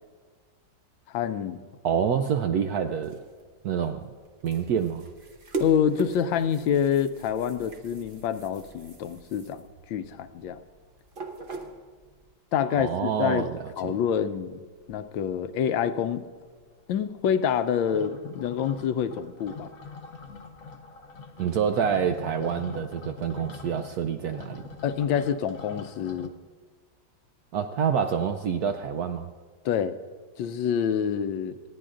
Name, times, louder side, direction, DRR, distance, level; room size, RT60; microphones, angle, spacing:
voice 1, 1.1-1.6 5.6-9.6 9.9-10.6 12.5-13.5 13.8-14.6 14.9-16.3 16.9-19.7 24.8-26.3 29.6-30.0 30.4-31.5, left 8 dB, 80° left, 11 dB, 1.3 m, -27 dB
voice 2, 1.8-3.2 3.6-4.1 4.4-5.1 12.7-13.6 13.8-13.9 21.4-24.6 27.5-29.3, right 7 dB, 70° right, 6 dB, 0.9 m, -27 dB
sound 1, 2.7-12.2, right 2 dB, 40° right, 0.9 m, -41 dB
sound 2, 13.2-14.1 14.5-14.6 14.8-15.4 15.7-26.3, left 5 dB, 55° left, 1.0 m, -44 dB
27.5 x 9.9 x 2.5 m, 1.5 s
omnidirectional pair, 2.1 m